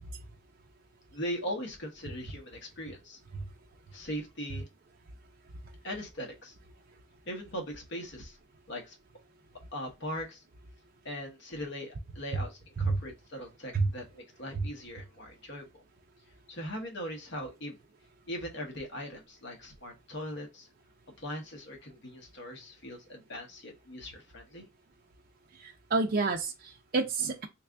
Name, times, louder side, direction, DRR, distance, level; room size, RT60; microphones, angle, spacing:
voice 1, 1.1-3.2 3.9-4.7 5.8-6.5 7.3-8.4 8.7-8.9 9.7-10.4 11.0-15.8 16.5-17.7 18.3-20.7 21.2-24.7, equal, 60° left, 1.0 m, -40 dB
voice 2, 25.6-27.5, right 3 dB, 45° right, 0.5 m, -29 dB
3.2 x 2.4 x 3.5 m
head